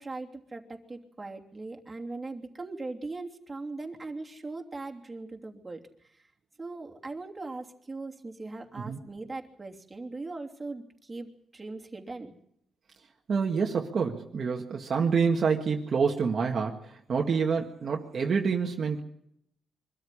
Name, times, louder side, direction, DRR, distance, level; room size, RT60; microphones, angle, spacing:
voice 1, 0.0-6.3 6.6-12.3, right 3 dB, 20° right, 1 dB, 3.0 m, -40 dB
voice 2, 13.3-19.0, right 5 dB, 50° right, 1 dB, 1.8 m, -27 dB
24.0 x 13.0 x 9.9 m, 0.74 s
cardioid pair, 115°, 0 cm